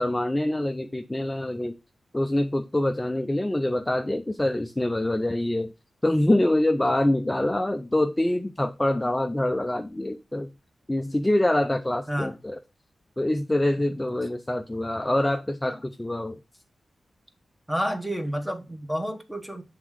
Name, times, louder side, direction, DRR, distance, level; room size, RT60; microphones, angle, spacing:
voice 1, 0.0-1.8 2.1-5.7 6.0-10.5 10.9-12.6 13.2-16.4, left 1 dB, 15° left, 0.5 m, -25 dB
voice 2, 17.7-19.6, equal, ahead, 1.0 m, -30 dB
8.0 x 3.6 x 4.8 m
wide cardioid pair, 115°, 0 cm